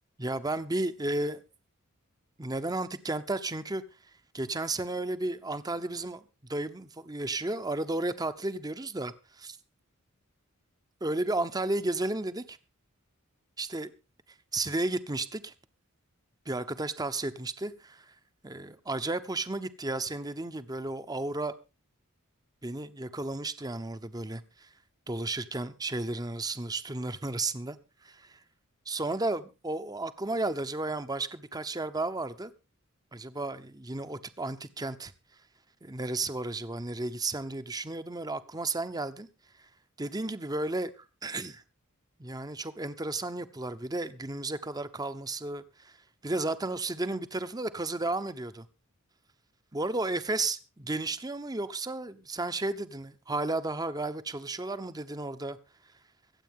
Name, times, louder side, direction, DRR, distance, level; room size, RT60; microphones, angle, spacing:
voice 1, 0.2-1.4 2.4-3.8 4.3-6.2 6.5-9.6 11.0-12.6 13.6-13.9 14.5-15.5 16.5-18.1 18.4-21.5 22.6-24.7 25.1-28.4 28.9-32.5 33.1-35.1 35.8-39.3 40.0-41.6 42.2-46.0 46.2-48.7 49.7-55.6, right 2 dB, 20° right, 0.9 m, -33 dB
24.5 x 8.3 x 3.7 m
head